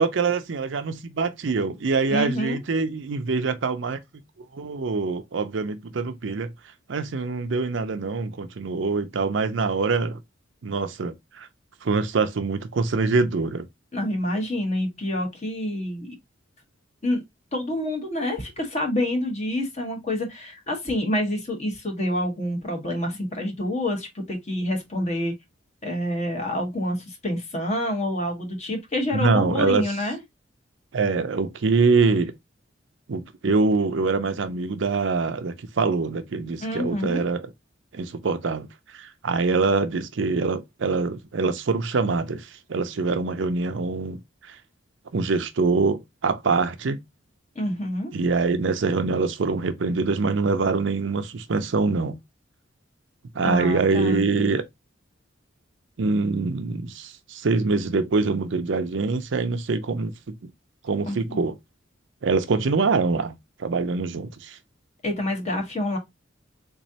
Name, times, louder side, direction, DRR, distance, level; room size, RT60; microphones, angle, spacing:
voice 1, 0.0-4.0 4.5-6.5 6.9-10.2 10.6-11.5 11.8-13.7 29.1-29.9 30.9-32.3 33.1-37.5 37.9-38.7 38.9-44.2 44.5-44.6 45.1-47.0 48.1-52.2 53.3-54.6 56.0-60.1 60.8-61.6 62.2-63.3 63.6-64.6, right 4 dB, 65° right, 0.5 m, -24 dB
voice 2, 2.1-2.6 13.9-16.1 17.0-17.2 17.5-25.3 25.8-30.2 36.6-37.2 47.5-48.1 53.4-54.2 61.1-61.4 65.0-66.0, left 1 dB, 35° left, 1.2 m, -27 dB
3.7 x 3.1 x 2.7 m
head